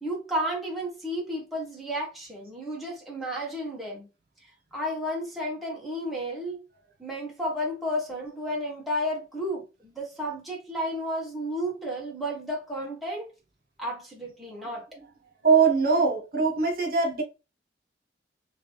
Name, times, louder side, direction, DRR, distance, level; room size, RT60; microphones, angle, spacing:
voice 1, 0.0-4.1 4.7-6.6 7.0-13.3 13.8-14.9 15.9-16.1, equal, ahead, 1.5 m, -32 dB
voice 2, 15.4-17.2, right 5 dB, 55° right, 1.3 m, -22 dB
3.8 x 3.0 x 3.0 m
head